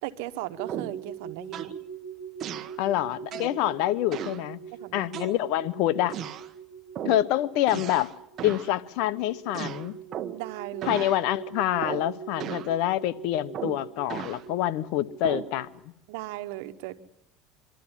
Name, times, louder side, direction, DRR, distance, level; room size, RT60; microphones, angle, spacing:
voice 1, 0.0-1.7 3.4-3.5 4.7-5.1 10.3-11.0 16.1-17.0, right 16 dB, 80° right, 1.4 m, -37 dB
sound 1, 0.6-15.7, right 8 dB, 15° left, 2.6 m, -43 dB
sound 2, 0.7-1.0 1.5-1.8 2.4-2.8 3.3-3.6 4.1-4.4 5.1-5.7 6.1-6.5 6.9-7.3 7.7-8.1 8.4-8.7 9.5-10.5 10.8-11.2 11.8-12.1 12.4-12.7 13.5-14.4 15.2-15.5, right 9 dB, 45° right, 1.3 m, -36 dB
voice 2, 2.8-4.6 4.9-6.2 7.0-8.1 8.4-9.9 10.8-15.7, left 13 dB, 70° left, 1.0 m, -26 dB
25.0 x 13.0 x 10.0 m
supercardioid pair, 110°, 0 cm